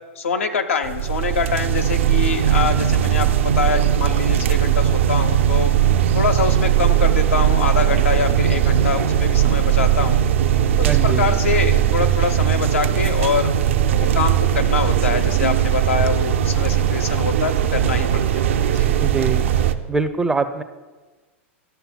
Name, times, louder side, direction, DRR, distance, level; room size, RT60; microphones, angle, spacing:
voice 1, 0.2-5.7 6.1-10.2 10.8-13.5 14.0-18.4 18.7-18.9, left 5 dB, 80° left, 6 dB, 0.7 m, -24 dB
sound 1, 0.8-19.7, right 10 dB, 70° right, 0.4 m, -18 dB
voice 2, 10.8-11.2 19.0-19.4 19.9-20.6, right 4 dB, 10° right, 9 dB, 0.4 m, -23 dB
12.5 x 6.6 x 2.2 m, 1.3 s
hypercardioid pair, 95°, 7 cm